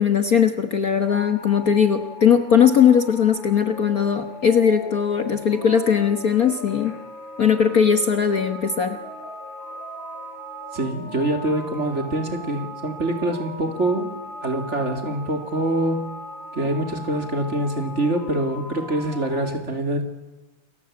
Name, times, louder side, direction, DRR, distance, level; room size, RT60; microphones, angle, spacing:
voice 1, 0.0-6.9 7.4-9.0, left 7 dB, 90° left, 8 dB, 0.7 m, -19 dB
sound 1, 1.0-19.5, left 1 dB, 40° right, 7.8 m, -38 dB
voice 2, 10.7-14.1 14.4-16.1 16.5-20.0, right 1 dB, 25° right, 5 dB, 2.7 m, -25 dB
29.0 x 21.5 x 8.7 m, 1.1 s
omnidirectional pair, 3.6 m